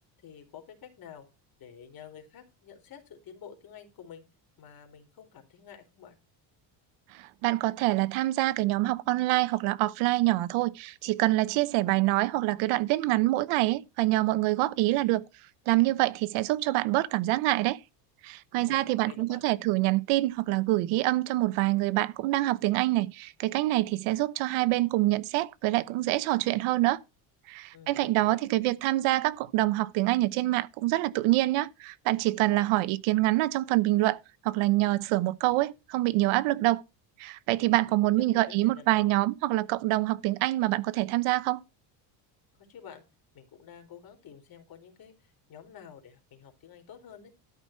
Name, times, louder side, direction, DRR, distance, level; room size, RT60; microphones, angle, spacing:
voice 1, 0.2-1.2 1.6-4.2 4.6-6.2 18.6-19.4 27.7-28.5 37.6-39.1 42.7-43.0 43.3-47.3, left 8 dB, 45° left, 4.0 m, -49 dB
voice 2, 7.1-15.3 15.7-17.8 18.2-27.0 27.5-34.2 34.4-36.8 37.2-41.6, right 18 dB, 75° right, 1.0 m, -26 dB
13.0 x 6.1 x 4.5 m
cardioid pair, 120°, 50 cm